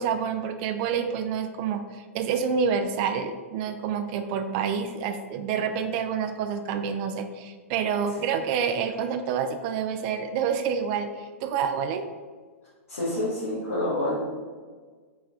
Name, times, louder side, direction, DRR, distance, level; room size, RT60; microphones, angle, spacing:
voice 1, 0.0-12.0, right 6 dB, 45° right, 7 dB, 0.3 m, -28 dB
voice 2, 12.9-14.2, left 1 dB, 75° left, -9 dB, 1.2 m, -27 dB
3.5 x 3.1 x 2.3 m, 1.5 s
hypercardioid pair, 110°, 8 cm